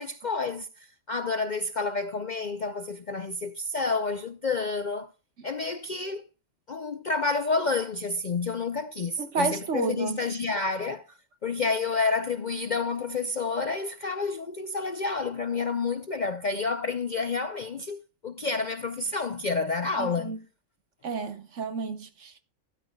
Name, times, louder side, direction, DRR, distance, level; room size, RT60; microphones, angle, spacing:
voice 1, 0.0-5.1 5.4-6.2 6.7-11.1 11.4-20.4, left 4 dB, 50° left, 0.6 m, -29 dB
voice 2, 9.3-10.2 20.0-20.4 21.0-22.4, right 4 dB, 65° right, 1.6 m, -30 dB
13.0 x 12.5 x 2.3 m
omnidirectional pair, 1.4 m